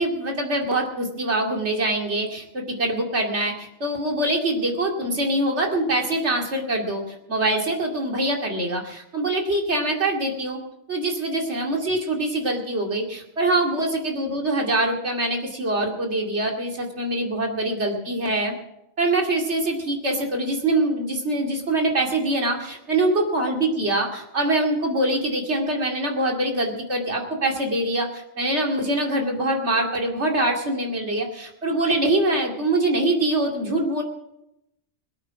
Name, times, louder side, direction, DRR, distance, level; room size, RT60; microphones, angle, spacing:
voice 1, 0.0-7.0 7.3-10.6 10.9-18.5 19.0-34.0, right 1 dB, 60° right, 1 dB, 2.8 m, -24 dB
21.5 x 8.9 x 5.9 m, 0.85 s
omnidirectional pair, 1.3 m